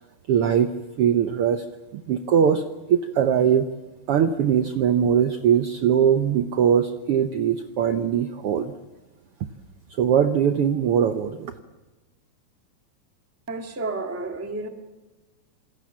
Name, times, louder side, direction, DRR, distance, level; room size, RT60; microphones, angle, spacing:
voice 1, 0.3-0.7 1.0-1.6 1.9-2.6 2.9-3.7 4.1-8.7 10.0-11.5, right 8 dB, 65° right, 7 dB, 1.5 m, -21 dB
voice 2, 13.5-14.7, right 3 dB, 5° right, 3 dB, 1.2 m, -31 dB
27.0 x 21.5 x 7.4 m, 1.2 s
omnidirectional pair, 3.5 m